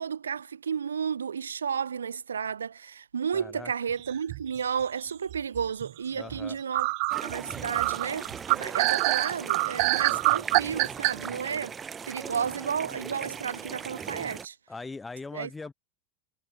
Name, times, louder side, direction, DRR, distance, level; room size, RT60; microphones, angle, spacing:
voice 1, 0.0-6.9 7.2-11.8 12.1-14.6 15.3-15.5, right 7 dB, 90° right, 2.5 m, -32 dB
voice 2, 3.3-3.7 6.1-6.6 10.1-10.5 14.7-15.7, left 3 dB, 15° left, 6.0 m, -41 dB
sound 1, 4.1-4.8 5.3-5.9 6.3-6.4 6.7-11.1, right 36 dB, 60° right, 1.4 m, -25 dB
sound 2, 7.1-14.5, right 6 dB, 25° right, 2.6 m, -39 dB
hypercardioid pair, 90°, 0 cm